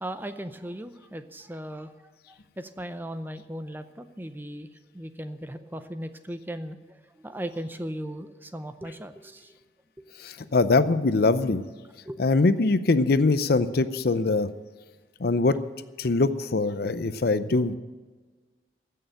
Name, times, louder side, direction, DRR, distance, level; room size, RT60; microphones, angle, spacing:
voice 1, 0.0-2.1 2.6-4.7 4.9-6.9 7.2-9.5 12.0-12.3, right 1 dB, 10° right, 10 dB, 0.6 m, -37 dB
voice 2, 10.2-11.6 12.2-14.5 15.2-15.6 16.0-17.8, left 3 dB, 55° left, 13 dB, 0.6 m, -22 dB
15.5 x 6.6 x 9.0 m, 1.4 s
head